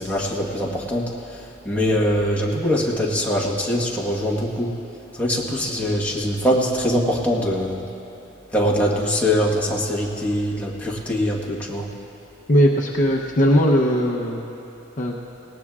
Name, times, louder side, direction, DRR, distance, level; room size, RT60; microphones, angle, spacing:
voice 1, 0.0-4.7 5.1-7.8 8.5-11.9, equal, 5° left, -4 dB, 1.3 m, -23 dB
voice 2, 12.5-14.5 15.0-15.2, equal, 40° left, -1 dB, 0.8 m, -18 dB
19.5 x 18.0 x 2.4 m, 2.8 s
head